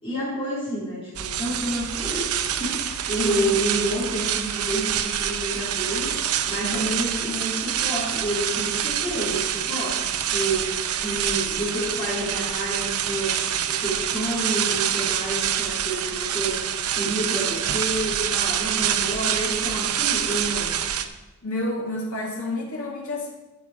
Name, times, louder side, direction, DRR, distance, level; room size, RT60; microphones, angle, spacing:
voice 1, 0.0-20.7, right 1 dB, 25° left, -12 dB, 3.8 m, -29 dB
sound 1, 1.1-21.0, right 9 dB, 85° right, 0.7 m, -26 dB
voice 2, 6.6-6.9 21.4-23.3, left 2 dB, 75° left, -2 dB, 2.2 m, -30 dB
14.5 x 6.4 x 4.9 m, 1.1 s
head